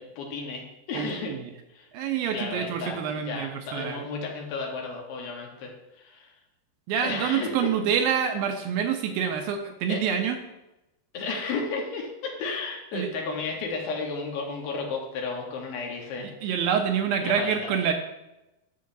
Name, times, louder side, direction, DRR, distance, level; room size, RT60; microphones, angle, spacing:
voice 1, 0.0-1.3 1.7-1.9 2.3-5.7 6.0-6.3 7.0-7.7 9.9-10.0 11.1-16.3 17.2-17.7, left 4 dB, 75° left, 0 dB, 2.9 m, -33 dB
voice 2, 0.9-1.4 1.9-4.0 6.9-10.4 12.9-13.1 16.2-17.9, right 7 dB, 80° right, 5 dB, 2.3 m, -27 dB
10.5 x 7.5 x 2.6 m, 0.95 s
omnidirectional pair, 4.5 m